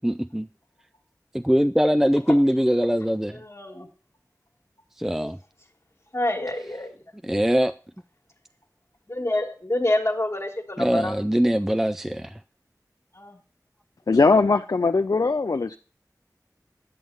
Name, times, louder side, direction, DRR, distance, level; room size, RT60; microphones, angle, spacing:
voice 1, 0.0-0.5 1.3-3.4 5.0-5.4 7.2-7.7 10.8-12.4, equal, 5° right, 0.3 m, -22 dB
voice 2, 3.4-3.9 6.1-6.9 9.1-11.1 13.1-13.4, left 1 dB, 45° left, 1.5 m, -27 dB
voice 3, 14.1-15.8, left 3 dB, 65° left, 0.4 m, -20 dB
9.3 x 6.4 x 5.3 m
wide cardioid pair, 45°, 7 cm